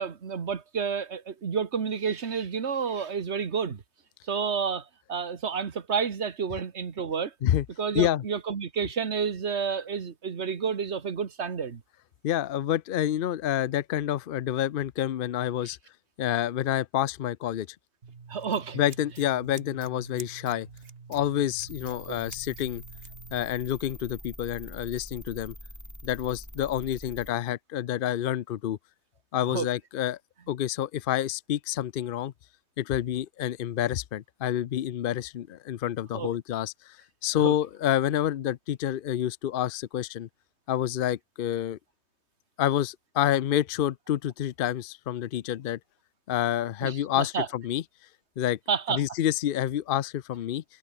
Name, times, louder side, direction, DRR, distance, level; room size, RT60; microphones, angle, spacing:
voice 1, 0.0-3.8 4.2-7.3 7.8-11.8 18.3-18.8 22.1-22.2 29.5-29.7 36.1-36.3 37.4-37.5 46.8-47.5 48.7-49.0, right 6 dB, 75° right, 1.7 m, -30 dB
voice 2, 12.2-15.8 16.2-17.8 18.7-20.7 21.1-22.8 23.3-25.5 26.0-28.8 29.3-30.2 30.5-32.3 32.8-40.3 40.7-41.8 42.6-45.8 46.3-47.8 48.4-48.6 48.9-50.6, left 11 dB, 60° left, 0.7 m, -28 dB
Scissors, 18.0-23.4, right 5 dB, 60° right, 1.8 m, -47 dB
sound 1, 21.7-27.3, equal, 15° left, 7.5 m, -45 dB
omnidirectional pair, 1.2 m